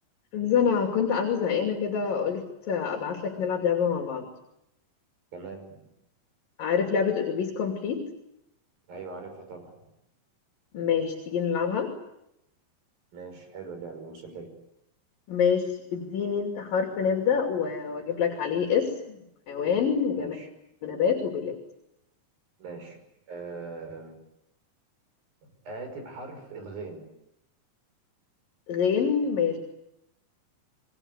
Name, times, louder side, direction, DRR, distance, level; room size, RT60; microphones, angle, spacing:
voice 1, 0.3-4.3 6.6-8.0 10.7-11.9 15.3-15.6 15.9-19.2 19.5-20.4 20.8-21.6 28.7-29.6, left 7 dB, 65° left, 3 dB, 4.4 m, -26 dB
voice 2, 5.3-5.8 8.9-9.8 13.1-14.5 20.1-20.5 22.6-23.0 23.3-24.2 25.7-27.1, right 4 dB, 70° right, 5 dB, 7.6 m, -40 dB
28.0 x 23.0 x 8.2 m, 0.83 s
omnidirectional pair, 4.4 m